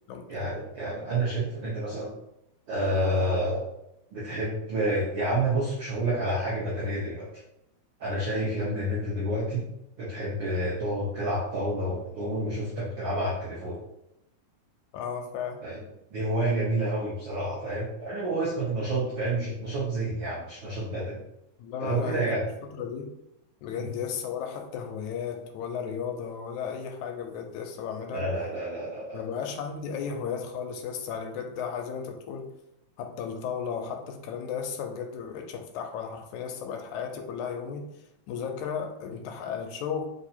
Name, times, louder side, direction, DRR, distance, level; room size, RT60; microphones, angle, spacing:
voice 1, 0.3-2.1 2.7-3.6 4.1-7.3 8.0-9.7 10.0-13.8 15.6-15.8 16.1-21.2 21.8-22.4 23.8-23.9 28.1-29.2, right 1 dB, 90° right, -5 dB, 1.0 m, -29 dB
voice 2, 14.9-15.6 21.6-23.1 23.6-28.3 29.1-32.5 33.0-37.9 38.3-40.1, left 7 dB, 80° left, 4 dB, 1.9 m, -34 dB
4.5 x 2.8 x 4.2 m, 0.85 s
omnidirectional pair, 3.5 m